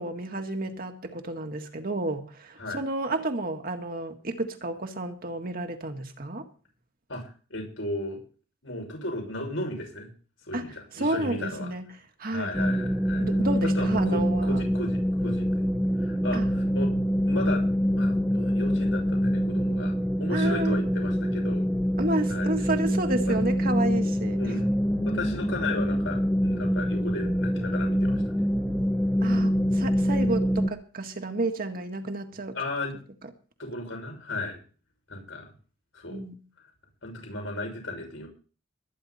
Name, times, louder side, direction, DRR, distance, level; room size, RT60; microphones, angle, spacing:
voice 1, 0.0-6.5 10.5-10.7 10.9-11.9 12.2-12.7 13.2-14.6 16.3-16.4 20.3-20.8 22.0-24.6 29.2-32.5 36.1-36.3, right 2 dB, 50° right, 1.8 m, -31 dB
voice 2, 7.1-8.2 8.6-10.1 10.5-11.7 12.3-13.3 13.6-15.7 16.0-16.9 17.3-17.6 18.0-21.7 22.3-22.5 23.3-23.4 24.4-24.7 25.0-28.3 32.5-33.0 33.6-34.6 35.1-35.5 35.9-36.2 37.0-38.3, left 2 dB, 75° left, 6.6 m, -35 dB
sound 1, 12.5-30.7, equal, 5° left, 1.0 m, -25 dB
20.5 x 10.0 x 4.3 m
head